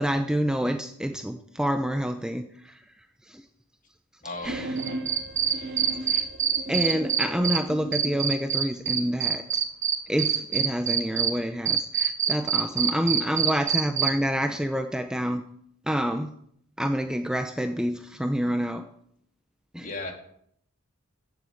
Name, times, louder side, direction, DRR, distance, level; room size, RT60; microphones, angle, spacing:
voice 1, 0.0-2.8 3.3-3.4 4.4-4.7 6.0-6.2 6.7-9.6 10.1-15.4 15.9-16.3 16.8-18.8 19.7-19.9, equal, 5° right, 7 dB, 0.6 m, -28 dB
voice 2, 4.2-4.6 6.6-6.7 19.8-20.1, left 2 dB, 40° left, 3 dB, 2.7 m, -35 dB
sound 1, 4.4-8.2, right 2 dB, 55° right, 2.4 m, -36 dB
Cricket, 4.8-7.6 7.9-11.3 11.7-14.1, right 8 dB, 35° right, 1.5 m, -24 dB
14.5 x 7.7 x 8.3 m, 0.68 s
head